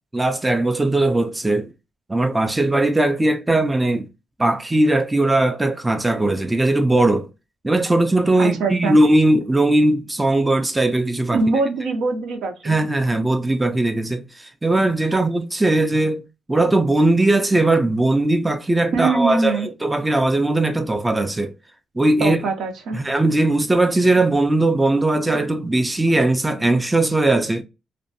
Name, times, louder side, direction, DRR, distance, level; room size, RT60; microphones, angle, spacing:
voice 1, 0.1-1.7 2.1-4.1 4.4-7.3 7.6-11.4 12.6-16.2 16.5-21.5 22.0-22.4 22.9-27.6, right 2 dB, 15° right, 0.3 m, -19 dB
voice 2, 8.4-9.0 11.3-12.8 15.1-15.2 18.9-19.7 22.2-23.0, right 3 dB, 75° right, 0.6 m, -22 dB
2.5 x 2.2 x 2.5 m
cardioid pair, 90°, 0 cm